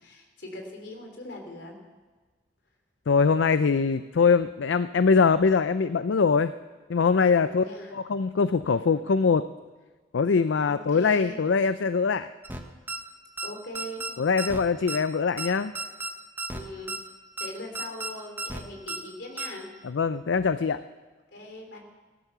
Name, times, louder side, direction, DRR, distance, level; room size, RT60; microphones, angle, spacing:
voice 1, 0.0-1.7 7.4-7.9 10.6-11.4 13.4-14.0 16.5-16.9 17.4-19.7 21.3-21.8, left 1 dB, 65° left, 3 dB, 3.4 m, -40 dB
voice 2, 3.1-6.5 6.9-9.5 10.1-12.3 14.2-15.7 19.8-20.8, left 5 dB, 85° left, 13 dB, 0.5 m, -23 dB
sound 1, 12.4-12.6 12.9-13.0 13.4-13.5 13.8-14.1 14.4-14.6 14.9-15.0 15.4-15.5 15.8-16.1 16.4-16.6 16.9-17.0 17.4-17.5 17.8-18.1 18.4-18.6 18.9-19.0 19.4-19.5, right 2 dB, 10° right, 1.1 m, -33 dB
17.0 x 12.0 x 6.9 m, 1.3 s
head